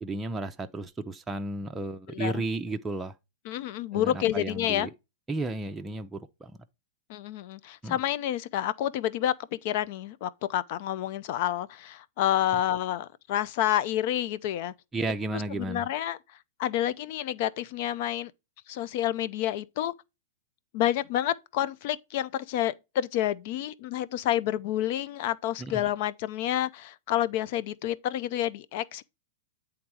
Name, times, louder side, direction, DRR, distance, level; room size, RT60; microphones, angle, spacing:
voice 1, 0.0-3.1 3.9-4.9 5.3-6.5 7.8-8.0 14.9-15.9 25.6-25.8, right 2 dB, 10° right, 0.5 m, -33 dB
voice 2, 2.1-2.4 3.4-4.9 7.1-14.7 15.3-16.2 16.6-18.3 18.7-19.9 20.7-29.0, left 12 dB, 55° left, 0.5 m, -29 dB
8.6 x 3.6 x 4.7 m
hypercardioid pair, 120°, 0 cm